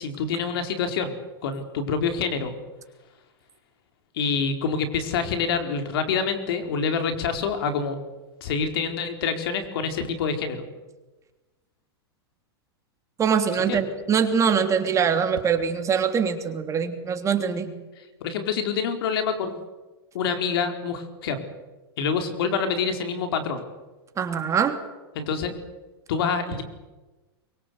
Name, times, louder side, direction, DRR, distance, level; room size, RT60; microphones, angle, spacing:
voice 1, 0.0-2.6 4.1-8.0 8.4-10.6 13.6-13.8 18.0-19.6 20.1-21.4 22.0-23.6 25.1-25.5 26.1-26.6, left 5 dB, 70° left, 6 dB, 4.4 m, -26 dB
voice 2, 13.2-17.7 24.2-24.8, right 7 dB, 25° right, 6 dB, 3.1 m, -23 dB
24.0 x 23.0 x 8.2 m, 1.1 s
hypercardioid pair, 120°, 13 cm